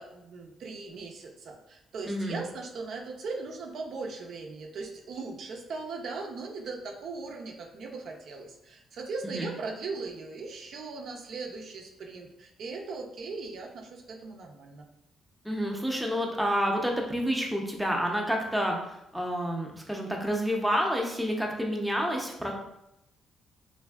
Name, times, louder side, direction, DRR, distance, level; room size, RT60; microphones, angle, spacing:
voice 1, 0.0-14.8, right 3 dB, 65° right, 1 dB, 0.4 m, -39 dB
voice 2, 2.1-2.4 9.2-9.5 15.4-18.8 19.1-22.5, equal, ahead, 0 dB, 0.5 m, -29 dB
3.2 x 2.5 x 2.3 m, 0.83 s
cardioid pair, 90°, 0 cm